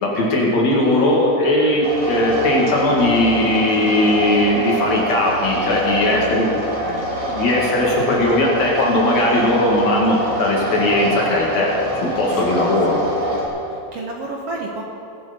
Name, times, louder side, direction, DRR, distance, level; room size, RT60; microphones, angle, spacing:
voice 1, 0.0-6.5 7.3-13.0, left 1 dB, 55° left, -2 dB, 3.3 m, -18 dB
sound 1, 1.8-13.5, right 1 dB, 25° right, 3.1 m, -25 dB
voice 2, 6.1-6.4 6.8-7.1 12.5-13.1 13.7-14.8, right 3 dB, 60° right, 0 dB, 1.9 m, -32 dB
18.5 x 11.0 x 5.3 m, 2.8 s
omnidirectional pair, 3.8 m